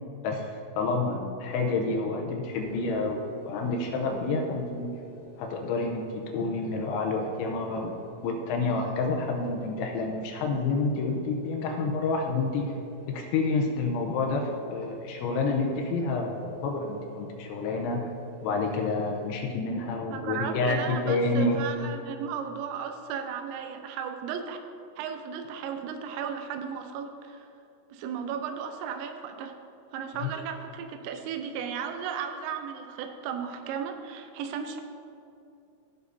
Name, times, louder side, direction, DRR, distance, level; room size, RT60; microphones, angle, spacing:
voice 1, 0.8-4.9 5.4-8.0 8.2-12.7 13.1-18.1 18.4-21.6 30.2-30.3, left 3 dB, 80° left, 1 dB, 2.9 m, -29 dB
sound 1, 2.4-19.4, right 1 dB, 65° right, 0.9 m, -48 dB
voice 2, 20.1-24.6 25.0-27.5 27.9-29.6 29.9-34.8, right 7 dB, 85° right, 6 dB, 3.3 m, -35 dB
16.0 x 6.4 x 2.7 m, 2.7 s
omnidirectional pair, 5.8 m